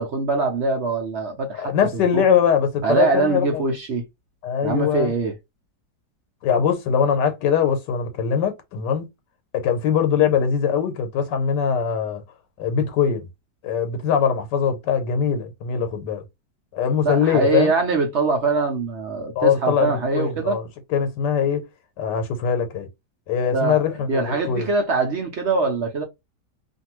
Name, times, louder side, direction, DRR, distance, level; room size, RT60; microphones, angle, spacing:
voice 1, 0.0-2.2 2.8-4.0 4.6-5.3 17.0-20.6 23.5-23.8 24.1-26.0, right 3 dB, 65° right, 0.7 m, -23 dB
voice 2, 1.5-3.7 4.4-5.1 6.4-9.1 9.5-12.2 12.6-13.2 13.6-16.2 16.7-17.7 19.3-21.6 22.0-22.9 23.3-24.7, left 7 dB, 85° left, 1.3 m, -22 dB
2.6 x 2.6 x 2.9 m
omnidirectional pair, 1.8 m